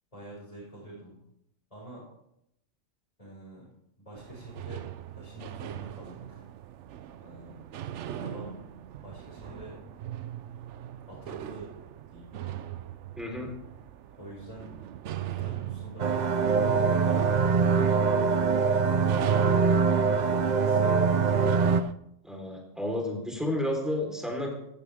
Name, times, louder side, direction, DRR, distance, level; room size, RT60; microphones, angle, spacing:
voice 1, 0.1-1.2 1.7-2.0 3.2-3.7 4.0-6.5 7.2-7.6 8.2-8.5 9.0-9.7 11.1-11.7 12.1-12.6 14.2-14.7 15.3-19.3 20.0-21.6, right 1 dB, 25° left, -8 dB, 5.6 m, -46 dB
sound 1, 4.1-21.9, right 11 dB, 70° right, 0.9 m, -40 dB
voice 2, 13.2-13.5 22.2-24.5, left 1 dB, ahead, 0 dB, 4.0 m, -31 dB
sound 2, 16.0-21.8, right 5 dB, 45° right, 0.6 m, -23 dB
17.5 x 14.5 x 3.6 m, 0.83 s
omnidirectional pair, 1.3 m